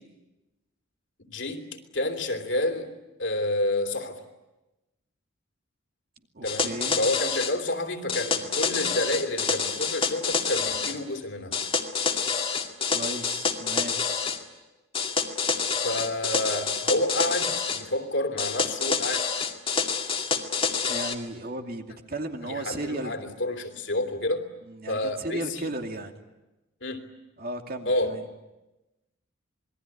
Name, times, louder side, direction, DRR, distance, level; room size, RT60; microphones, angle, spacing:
voice 1, 1.2-1.6 1.9-2.9 3.2-4.2 6.4-11.6 15.8-19.2 22.4-24.5 24.9-25.7 26.8-27.1 27.8-28.1, left 1 dB, 60° left, 5 dB, 3.1 m, -29 dB
voice 2, 6.3-7.0 12.9-14.0 20.9-23.1 24.7-26.2 27.4-28.2, right 1 dB, 45° right, 4 dB, 2.5 m, -35 dB
sound 1, 6.5-7.5 8.1-11.0 11.5-14.4 14.9-17.8 18.4-21.2, left 5 dB, 25° left, 2.2 m, -27 dB
27.0 x 21.5 x 10.0 m, 1.0 s
head